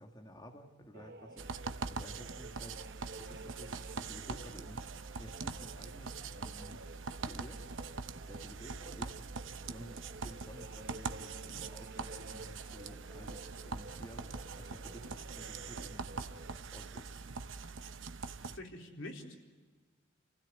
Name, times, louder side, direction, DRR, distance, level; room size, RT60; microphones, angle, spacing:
voice 1, 0.0-2.9 3.2-6.8 7.2-7.7 8.0-16.3 16.7-17.1, equal, 20° left, 2 dB, 1.8 m, -53 dB
sound 1, 0.9-16.6, right 2 dB, 50° right, 1.1 m, -52 dB
sound 2, 1.4-18.6, right 4 dB, 85° right, 0.9 m, -43 dB
voice 2, 18.5-19.4, left 1 dB, 85° left, 1 dB, 4.1 m, -45 dB
29.0 x 16.5 x 8.4 m, 1.4 s
head